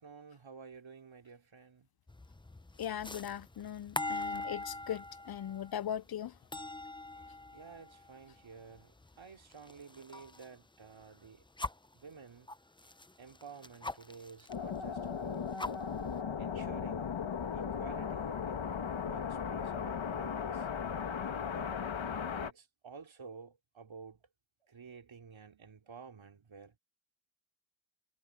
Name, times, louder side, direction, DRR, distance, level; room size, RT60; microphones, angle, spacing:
voice 1, 0.0-1.9 7.1-11.4 11.9-12.5 12.8-12.9 13.2-15.6 16.4-17.2 17.5-20.7 21.5-21.8 22.4-24.3 24.6-26.8, right 5 dB, 75° right, 3.4 m, -52 dB
sound 1, 2.1-10.5 10.8-11.9 12.5-14.5 14.9-15.0 15.3-16.2, left 2 dB, 10° left, 0.7 m, -43 dB
voice 2, 2.8-6.3, left 10 dB, 50° left, 0.5 m, -39 dB
sound 2, 14.5-22.5, left 7 dB, 70° left, 1.7 m, -37 dB
cardioid pair, 55°, 48 cm